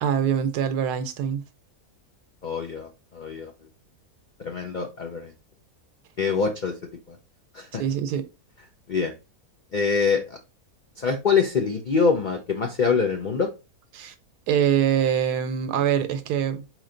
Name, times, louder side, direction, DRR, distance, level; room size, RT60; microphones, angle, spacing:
voice 1, 0.0-1.4 7.8-8.2 13.9-14.1 14.5-16.6, right 9 dB, 85° right, 1.3 m, -24 dB
voice 2, 2.4-3.5 4.4-5.3 6.2-6.8 7.1-7.2 7.5-7.8 8.9-9.1 9.7-10.4 11.0-13.5, left 5 dB, 75° left, 0.4 m, -24 dB
4.4 x 3.1 x 3.7 m
omnidirectional pair, 1.7 m